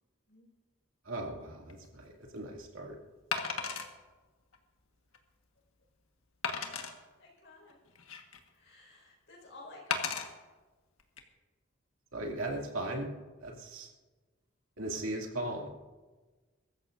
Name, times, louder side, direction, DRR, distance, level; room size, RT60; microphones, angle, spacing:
voice 1, 1.1-3.0 12.1-13.1 13.4-13.9 14.8-15.7, right 1 dB, 75° right, 0 dB, 2.5 m, -37 dB
Wood, 1.7-1.9 3.3-3.9 4.5-4.6 5.1-5.2 6.4-6.9 7.7-8.5 9.9-10.3 11.0-11.2, left 6 dB, 85° left, 1.5 m, -34 dB
voice 2, 7.2-7.8 8.5-10.3, left 2 dB, 55° left, -1 dB, 4.9 m, -53 dB
23.5 x 14.0 x 2.6 m, 1.3 s
head